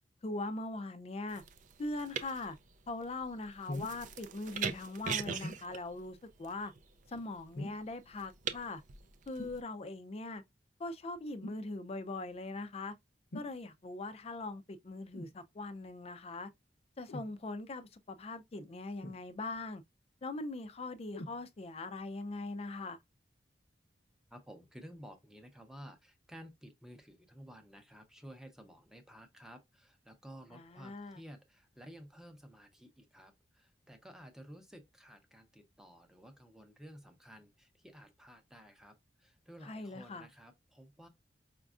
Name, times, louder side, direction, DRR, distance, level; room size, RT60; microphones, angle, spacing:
voice 1, 0.2-1.4 1.8-2.6 2.9-6.7 7.1-8.8 9.3-10.4 10.8-12.9 13.3-16.5 17.0-19.8 20.2-23.0 30.5-31.2 39.7-40.2, left 2 dB, 35° left, 0.4 m, -41 dB
sound 1, 1.3-9.6, right 6 dB, 45° right, 0.4 m, -42 dB
sound 2, 3.7-4.0 5.4-5.7 7.5-7.9 9.4-9.6 11.4-11.7 13.3-13.6 15.1-15.4 17.1-17.3 19.0-19.6 21.1-21.4 22.2-22.3, left 1 dB, 75° left, 0.7 m, -43 dB
voice 2, 24.3-41.1, equal, 5° right, 0.7 m, -53 dB
5.0 x 2.3 x 2.4 m
head